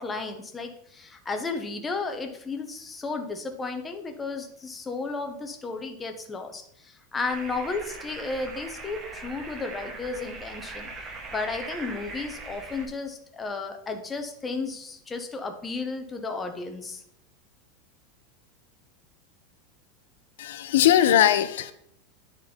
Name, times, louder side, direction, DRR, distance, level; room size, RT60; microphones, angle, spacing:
voice 1, 0.0-10.9 11.3-17.0, left 3 dB, 10° left, 5 dB, 0.8 m, -33 dB
sound 1, 7.3-12.9, right 3 dB, 20° right, 1.0 m, -40 dB
voice 2, 20.4-21.7, left 11 dB, 80° left, 12 dB, 0.7 m, -20 dB
9.3 x 3.9 x 5.1 m, 0.72 s
supercardioid pair, 170°, 0 cm